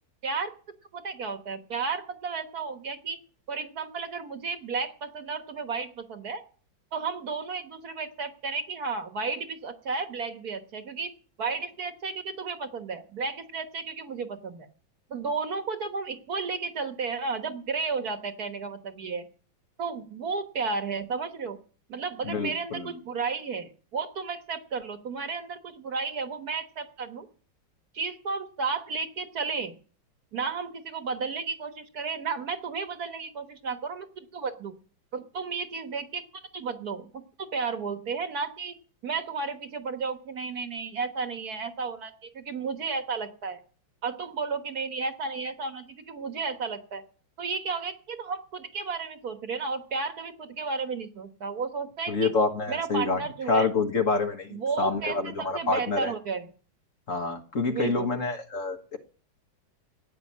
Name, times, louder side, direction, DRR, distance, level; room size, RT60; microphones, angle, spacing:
voice 1, 0.9-3.2 3.5-6.4 6.9-11.1 11.4-14.7 15.1-19.3 19.8-21.6 21.9-27.3 27.9-29.7 30.3-34.7 35.1-36.2 36.5-38.8 39.0-43.6 44.0-47.0 47.4-52.3 52.7-53.7 54.5-56.5 57.7-58.1, right 4 dB, 55° right, 8 dB, 1.7 m, -33 dB
voice 2, 22.2-22.9 52.1-53.2 53.5-56.1 57.1-59.0, left 3 dB, 45° left, 5 dB, 1.6 m, -27 dB
15.5 x 9.7 x 7.4 m, 0.42 s
omnidirectional pair, 2.1 m